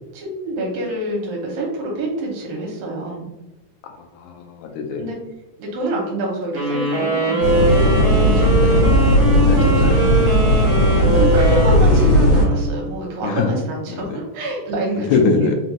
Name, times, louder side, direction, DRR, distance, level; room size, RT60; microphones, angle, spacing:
voice 1, 0.1-3.3 5.0-5.2 5.6-7.6 8.1-8.5 9.5-9.9 11.1-15.5, right 1 dB, 70° right, -1 dB, 2.4 m, -26 dB
voice 2, 3.8-5.0 8.6-8.7 9.5-10.1 13.2-13.5 13.9-14.2 15.0-15.6, left 4 dB, 80° left, 3 dB, 1.8 m, -22 dB
sound 1, 6.5-12.9, right 2 dB, 55° right, 1.7 m, -22 dB
sound 2, 7.4-12.4, equal, 65° left, 2.4 m, -15 dB
5.1 x 2.5 x 2.9 m, 0.99 s
omnidirectional pair, 3.6 m